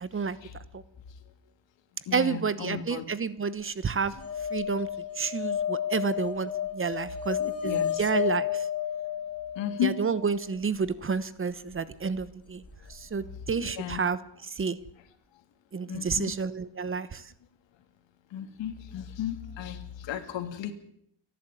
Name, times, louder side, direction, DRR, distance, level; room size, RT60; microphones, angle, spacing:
voice 1, 0.0-0.4 0.7-0.8 2.1-4.1 4.5-4.9 5.2-7.4 7.6-8.7 9.8-12.6 12.9-14.8 15.7-17.3, right 5 dB, 30° right, 16 dB, 1.1 m, -30 dB
voice 2, 2.1-3.0 7.4-8.1 9.5-10.0 13.6-14.0 15.8-16.3 18.3-20.7, left 10 dB, 75° left, 9 dB, 2.9 m, -34 dB
sound 1, 4.2-10.4 12.6-12.7 12.9-13.0, left 9 dB, 30° left, 3.3 m, -32 dB
29.0 x 11.5 x 9.2 m, 0.73 s
cardioid pair, 125°, 45 cm